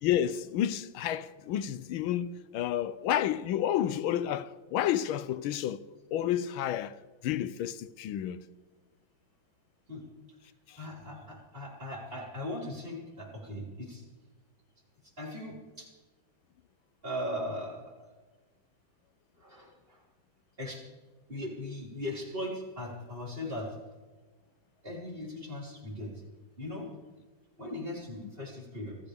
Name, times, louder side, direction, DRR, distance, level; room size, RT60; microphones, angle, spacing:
voice 1, 0.0-5.8 6.1-7.0 7.2-8.4 10.7-10.8, left 11 dB, 90° left, 1.5 m, -30 dB
voice 2, 10.8-14.0 15.2-15.9 17.0-17.9 19.4-20.0 20.6-20.9 21.3-23.8 24.8-26.2 26.6-26.9 27.6-29.0, left 1 dB, 25° right, 5.3 m, -39 dB
27.0 x 15.0 x 3.5 m
omnidirectional pair, 2.2 m